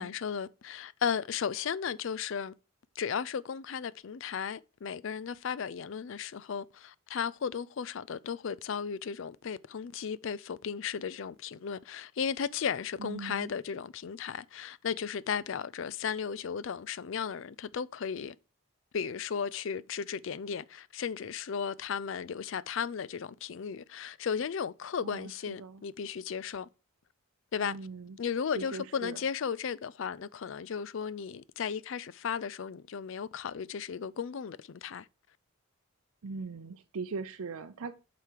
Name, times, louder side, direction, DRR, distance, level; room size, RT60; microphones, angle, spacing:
voice 1, 0.0-2.5 3.0-18.4 18.9-26.7 27.5-27.7 28.2-35.1, left 7 dB, 60° left, 0.4 m, -35 dB
voice 2, 13.0-13.5 25.0-25.8 27.6-28.2 28.5-29.2 36.2-37.9, right 4 dB, 80° right, 0.5 m, -40 dB
8.2 x 5.2 x 4.6 m
head